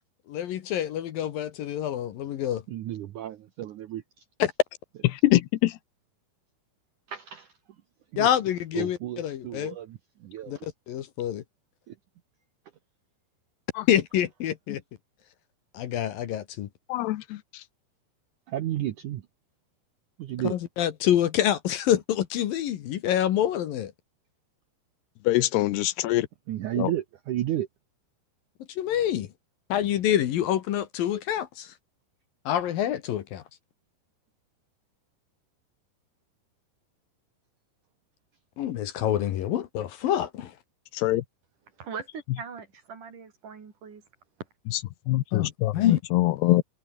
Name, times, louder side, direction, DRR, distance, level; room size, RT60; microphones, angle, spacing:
voice 1, 0.3-2.6 4.4-4.5 8.2-9.8 10.5-11.4 13.9-14.8 15.7-16.7 20.5-23.9 28.7-29.3 29.7-31.7 32.5-33.4 38.6-40.5 45.3-46.0, left 11 dB, 65° left, 2.8 m, -26 dB
voice 2, 2.7-4.0 7.1-7.5 8.1-8.3 8.7-10.7 11.9-12.0 18.5-19.2 20.2-20.6 26.5-27.7, right 13 dB, 70° right, 1.9 m, -32 dB
voice 3, 5.1-5.7 16.9-17.4 25.3-26.3 26.8-26.9 40.9-41.2 45.1-46.6, left 16 dB, 80° left, 2.9 m, -23 dB
voice 4, 41.8-44.0, right 6 dB, 50° right, 4.8 m, -40 dB
omnidirectional pair, 4.8 m